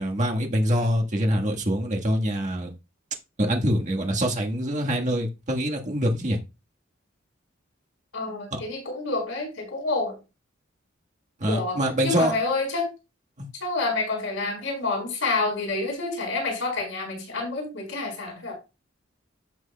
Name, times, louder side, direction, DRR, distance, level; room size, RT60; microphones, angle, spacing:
voice 1, 0.0-2.7 3.4-6.4 11.4-12.3 13.4-13.5, equal, 40° right, 1.5 m, -24 dB
voice 2, 8.1-10.2 11.5-12.9 13.6-18.5, left 3 dB, 80° left, 4.9 m, -28 dB
13.5 x 6.2 x 2.3 m
head